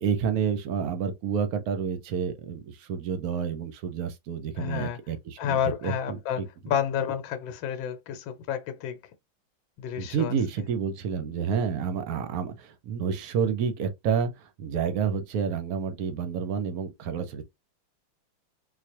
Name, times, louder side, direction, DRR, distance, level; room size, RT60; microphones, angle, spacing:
voice 1, 0.0-6.5 10.0-17.4, right 7 dB, 65° right, 0.9 m, -29 dB
voice 2, 4.6-5.0 5.4-9.0 9.8-10.3, left 9 dB, 80° left, 1.4 m, -30 dB
4.0 x 2.5 x 2.8 m
omnidirectional pair, 2.1 m